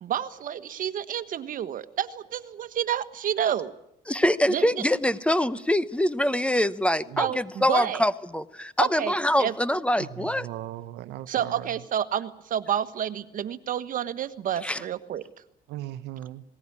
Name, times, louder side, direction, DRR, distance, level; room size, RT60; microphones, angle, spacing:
voice 1, 0.0-3.7 4.5-4.8 7.2-8.0 8.8-9.5 11.3-15.2, right 10 dB, 55° right, 12 dB, 1.4 m, -29 dB
voice 2, 4.1-10.5 14.6-14.8, left 1 dB, 5° left, 15 dB, 0.9 m, -24 dB
voice 3, 10.0-11.6 15.7-16.4, right 14 dB, 85° right, 14 dB, 1.0 m, -37 dB
19.5 x 18.5 x 9.9 m, 0.79 s
cardioid pair, 110°, 17 cm